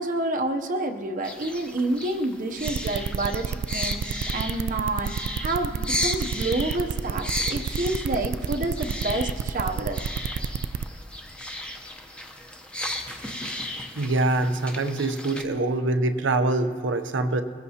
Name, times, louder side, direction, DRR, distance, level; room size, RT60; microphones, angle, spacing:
voice 1, 0.0-10.0, right 2 dB, 45° right, 4 dB, 0.7 m, -28 dB
sound 1, 1.2-15.4, left 1 dB, 5° left, 0.7 m, -35 dB
sound 2, 2.7-10.8, right 7 dB, 65° right, 0.3 m, -29 dB
voice 2, 14.0-17.4, right 2 dB, 85° right, 9 dB, 0.7 m, -24 dB
21.5 x 15.5 x 2.8 m, 2.5 s
head